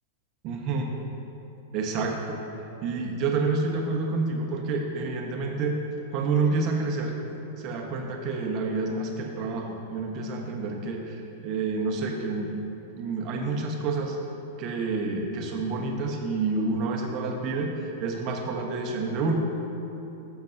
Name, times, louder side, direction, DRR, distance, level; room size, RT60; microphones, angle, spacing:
voice 1, 0.4-0.9 1.7-2.4 2.8-5.7 6.1-7.2 7.6-12.6 13.0-14.2 14.6-19.3, right 3 dB, 45° right, 1 dB, 1.2 m, -28 dB
13.0 x 7.0 x 2.7 m, 2.9 s
hypercardioid pair, 110°, 0 cm